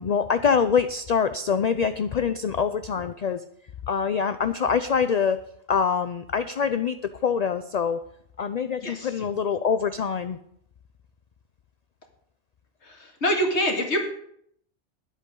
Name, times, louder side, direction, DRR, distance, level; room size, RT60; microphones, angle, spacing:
voice 1, 0.0-3.4 3.9-5.4 5.7-7.0 7.2-8.0 8.4-10.4, left 6 dB, 50° left, 11 dB, 0.5 m, -24 dB
voice 2, 13.2-14.1, equal, 75° left, 2 dB, 2.5 m, -24 dB
20.0 x 8.3 x 3.8 m, 0.70 s
omnidirectional pair, 1.2 m